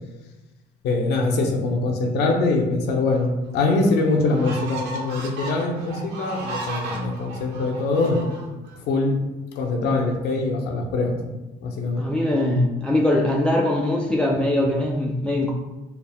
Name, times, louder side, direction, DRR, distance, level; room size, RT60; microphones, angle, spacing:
voice 1, 0.8-8.2 8.9-9.2 9.6-11.2 11.6-12.1, left 3 dB, 75° left, 2 dB, 0.7 m, -23 dB
sound 1, 3.1-3.2 3.8-8.8, right 2 dB, 85° right, 0.9 m, -35 dB
voice 2, 12.0-15.5, left 1 dB, 5° left, -2 dB, 0.4 m, -22 dB
4.7 x 2.0 x 3.5 m, 1.1 s
cardioid pair, 110°, 17 cm